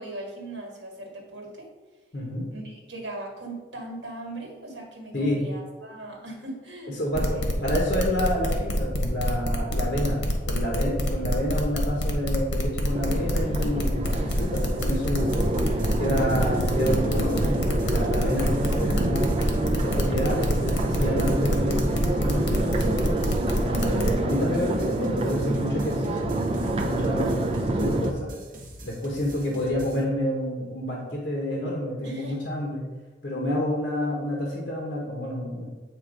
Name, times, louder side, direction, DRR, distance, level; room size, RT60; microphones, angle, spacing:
voice 1, 0.0-1.7 2.5-7.5 32.0-32.4, right 2 dB, 70° right, 1 dB, 1.8 m, -39 dB
voice 2, 2.1-2.5 5.1-5.4 6.9-15.3 16.0-19.3 19.7-23.1 23.6-28.3 28.8-32.8 33.2-35.7, equal, 55° left, -2 dB, 1.2 m, -29 dB
sound 1, 7.1-24.1, equal, 75° left, 1.1 m, -26 dB
Crowd, 12.9-28.1, right 2 dB, 30° right, 0.5 m, -27 dB
sound 2, 14.0-30.0, equal, 45° right, 1.0 m, -44 dB
8.0 x 3.0 x 5.1 m, 1.3 s
head